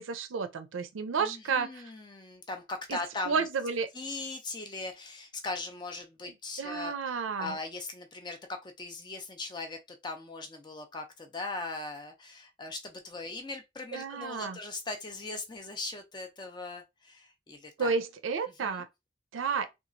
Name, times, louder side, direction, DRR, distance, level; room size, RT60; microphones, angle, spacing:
voice 1, 0.0-1.8 2.9-3.0 3.3-3.9 6.6-7.6 13.9-14.6 17.8-18.9 19.3-19.7, right 5 dB, 80° right, 0.4 m, -31 dB
voice 2, 1.1-3.5 3.9-6.9 7.4-17.9 18.6-18.8, left 3 dB, 20° left, 0.4 m, -39 dB
2.9 x 2.3 x 2.5 m
head